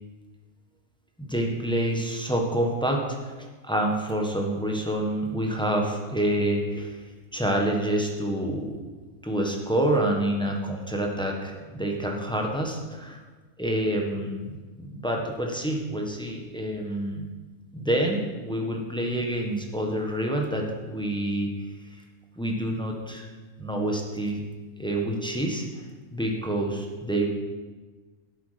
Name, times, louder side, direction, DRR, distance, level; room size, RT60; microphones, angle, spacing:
voice 1, 1.2-3.3 3.6-7.0 7.3-8.8 9.2-13.2 13.6-17.2 17.7-22.0 22.4-23.3 23.6-24.4 24.8-25.8 26.1-27.3, right 1 dB, 5° left, 0 dB, 1.3 m, -27 dB
11.5 x 8.2 x 5.1 m, 1.3 s
omnidirectional pair, 1.4 m